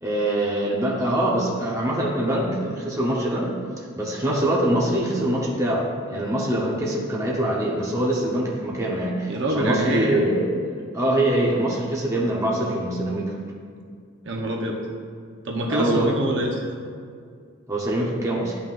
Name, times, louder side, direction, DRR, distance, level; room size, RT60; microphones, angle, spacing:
voice 1, 0.0-3.5 3.8-13.3 15.7-16.1 17.7-18.6, right 1 dB, 15° right, -4 dB, 0.9 m, -24 dB
voice 2, 9.3-10.2 14.2-14.8 15.4-16.6, right 1 dB, 60° right, -1 dB, 1.0 m, -25 dB
11.0 x 5.6 x 2.5 m, 2.2 s
head